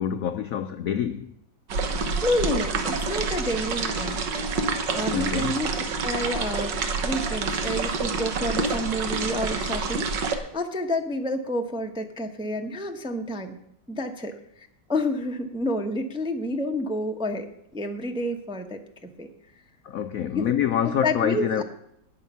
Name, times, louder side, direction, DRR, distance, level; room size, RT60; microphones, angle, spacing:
voice 1, 0.0-1.3 5.1-5.6 19.8-21.6, left 9 dB, 90° left, 9 dB, 0.7 m, -26 dB
sound 1, 1.7-10.4, right 4 dB, 65° right, 1.8 m, -27 dB
voice 2, 2.2-4.2 4.9-5.7 6.0-13.6 13.9-19.3 20.3-20.5 20.8-21.6, left 1 dB, 5° right, 4 dB, 0.4 m, -29 dB
19.0 x 6.5 x 5.6 m, 0.79 s
omnidirectional pair, 2.1 m